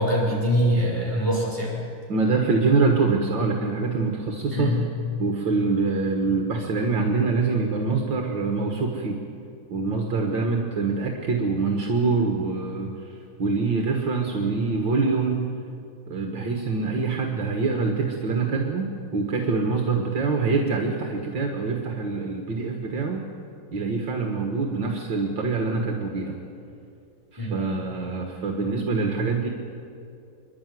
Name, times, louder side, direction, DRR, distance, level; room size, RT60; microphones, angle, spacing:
voice 1, 0.0-1.8 4.5-4.9 27.4-27.6, equal, 10° right, -5 dB, 6.4 m, -23 dB
voice 2, 2.1-4.7 5.2-9.2 9.7-15.5 16.1-18.9 19.1-23.2 23.7-26.4 27.3-29.5, right 4 dB, 65° right, 2 dB, 2.5 m, -25 dB
27.5 x 11.5 x 9.4 m, 2.5 s
omnidirectional pair, 2.3 m